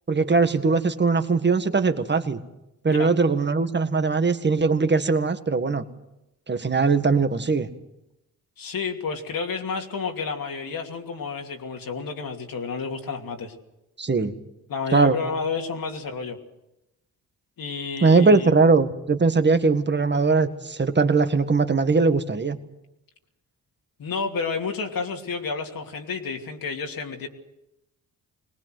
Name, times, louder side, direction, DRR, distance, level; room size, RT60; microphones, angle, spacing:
voice 1, 0.1-2.4 2.8-5.8 6.5-7.7 14.0-14.3 14.9-15.2 18.0-22.6, right 4 dB, 30° right, 9 dB, 1.8 m, -20 dB
voice 2, 8.6-13.5 14.7-16.4 17.6-18.5 24.0-27.3, left 5 dB, 60° left, 2 dB, 2.8 m, -30 dB
21.0 x 19.0 x 7.9 m, 0.92 s
supercardioid pair, 65°, 38 cm